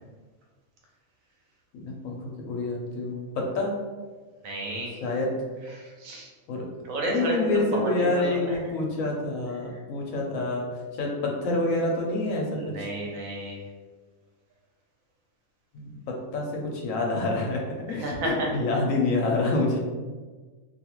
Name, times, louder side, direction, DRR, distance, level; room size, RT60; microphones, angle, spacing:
voice 1, 1.7-3.7 5.0-5.3 6.5-6.7 7.0-10.7 11.0-12.9 15.7-16.0 16.3-19.8, left 2 dB, 75° left, -1 dB, 1.0 m, -27 dB
voice 2, 4.4-5.0 5.7-6.3 6.8-8.5 9.7-9.8 12.6-13.6 17.9-18.5, right 2 dB, 80° right, -1 dB, 1.1 m, -31 dB
2.6 x 2.3 x 2.9 m, 1.4 s
omnidirectional pair, 1.4 m